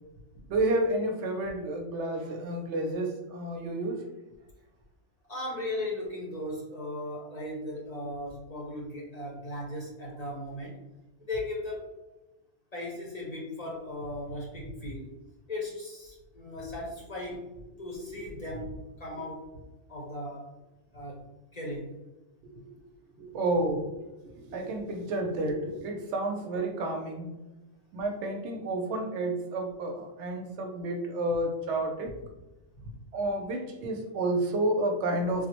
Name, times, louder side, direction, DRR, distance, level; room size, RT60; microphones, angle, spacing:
voice 1, 0.5-4.0 22.4-22.7 23.2-23.9 24.2-27.4 27.9-32.1 33.1-35.5, right 1 dB, 75° right, 3 dB, 0.9 m, -30 dB
voice 2, 5.3-10.8 11.2-11.9 12.7-15.1 15.5-17.5 17.8-19.5 19.9-20.5 20.9-21.3 21.5-22.0 32.8-32.9, left 1 dB, 40° left, -4 dB, 0.7 m, -37 dB
3.6 x 2.0 x 2.9 m, 1.0 s
omnidirectional pair, 1.2 m